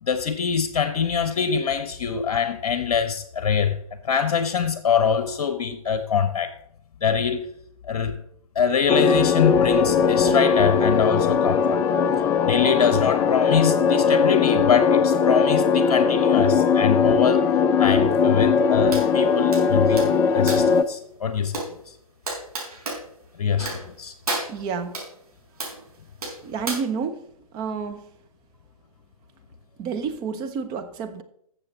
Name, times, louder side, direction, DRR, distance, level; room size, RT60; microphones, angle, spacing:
voice 1, 0.0-3.8 4.0-6.5 7.0-7.5 7.9-8.2 8.5-11.8 12.4-17.5 17.8-21.7 23.4-24.1, left 7 dB, 55° left, 1.0 m, -24 dB
sound 1, 8.9-20.8, left 6 dB, 10° left, 0.4 m, -20 dB
sound 2, 18.9-19.1 19.5-20.8 21.5-21.7 22.3-23.0 23.6-23.9 24.3-25.1 25.6-25.8 26.2-26.7, right 2 dB, 85° right, 4.8 m, -31 dB
voice 2, 24.5-25.0 26.4-27.2 27.5-28.0 29.8-31.2, right 6 dB, 20° right, 0.8 m, -29 dB
13.5 x 7.1 x 4.0 m
figure-of-eight pair, 130°, 19 cm